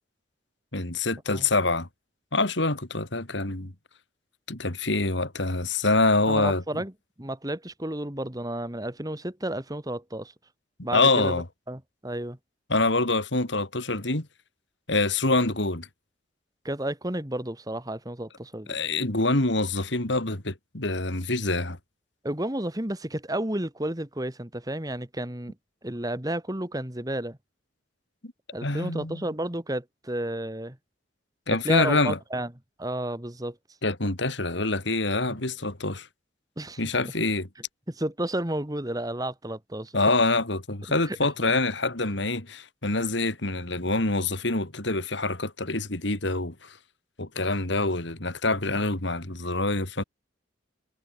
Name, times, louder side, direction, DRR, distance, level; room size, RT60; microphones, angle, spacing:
voice 1, 0.7-1.9 2.3-3.7 4.5-6.6 10.9-11.4 12.7-14.3 14.9-15.9 18.7-21.8 28.2-28.3 28.6-29.2 31.5-32.2 33.8-36.1 36.8-37.5 39.9-46.8 47.2-50.0, left 2 dB, 65° left, 3.0 m, -25 dB
voice 2, 6.3-6.9 7.2-10.3 10.8-12.4 16.6-18.7 22.2-25.5 25.8-27.4 28.5-30.8 31.6-32.5 32.8-33.6 35.3-35.4 36.6-36.8 37.9-39.9 41.1-41.2, right 1 dB, 20° right, 1.8 m, -32 dB
head